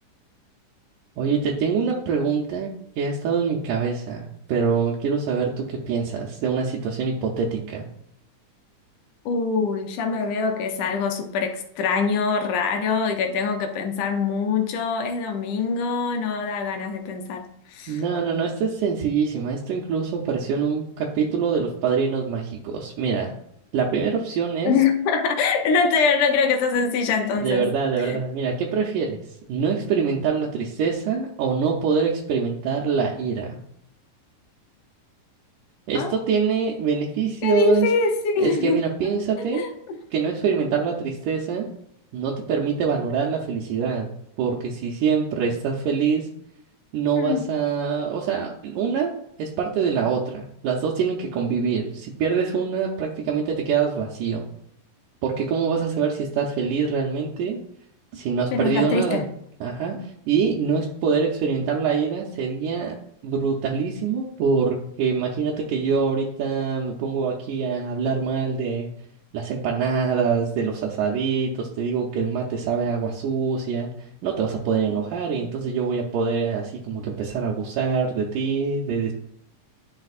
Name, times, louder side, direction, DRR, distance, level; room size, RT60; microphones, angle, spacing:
voice 1, 1.2-2.7 3.0-7.9 17.9-23.3 23.7-24.7 27.3-29.2 29.5-33.6 35.9-37.9 38.4-39.6 40.1-41.7 42.1-44.1 44.4-46.3 46.9-49.1 49.4-54.5 55.2-57.6 58.1-59.2 59.6-62.9 63.2-68.9 69.3-79.1, right 6 dB, 80° right, 2.3 m, -24 dB
voice 2, 9.3-18.0 24.7-27.7 28.0-28.2 36.0-36.3 37.4-39.1 39.4-40.0 47.2-47.5 58.5-59.3, left 5 dB, 80° left, 2.2 m, -24 dB
11.0 x 4.4 x 2.4 m
omnidirectional pair, 3.7 m